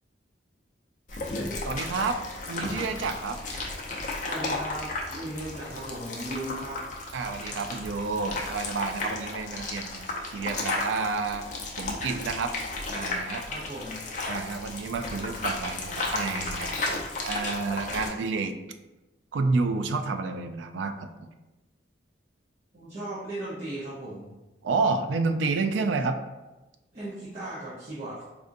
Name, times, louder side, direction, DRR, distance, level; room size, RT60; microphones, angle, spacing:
sound 1, 1.1-18.1, left 2 dB, 40° left, 0.5 m, -34 dB
voice 1, 1.6-2.2 2.5-3.4 7.1-11.5 11.8-12.6 12.9-13.4 14.2-17.0 17.2-18.5 19.3-21.3 24.6-26.2, right 4 dB, 80° right, 8 dB, 0.3 m, -29 dB
voice 2, 4.3-6.8 13.5-13.9 22.7-24.3 26.9-28.2, right 1 dB, 35° right, -11 dB, 0.8 m, -37 dB
4.2 x 2.5 x 2.5 m, 1.1 s
head